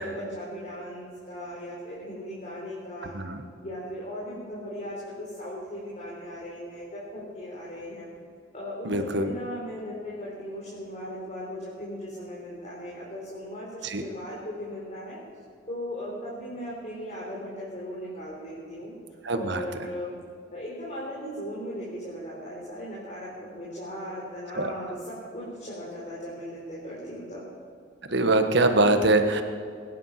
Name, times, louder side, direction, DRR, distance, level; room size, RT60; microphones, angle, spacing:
voice 1, 0.0-3.1 3.6-8.1 8.5-15.2 15.7-18.9 19.4-20.2 20.5-27.4, equal, 40° left, -6 dB, 4.0 m, -37 dB
voice 2, 8.8-9.3 13.8-14.0 19.2-19.6 24.5-24.7 28.1-29.4, right 2 dB, 65° right, 7 dB, 1.4 m, -23 dB
23.0 x 10.5 x 5.8 m, 2.2 s
head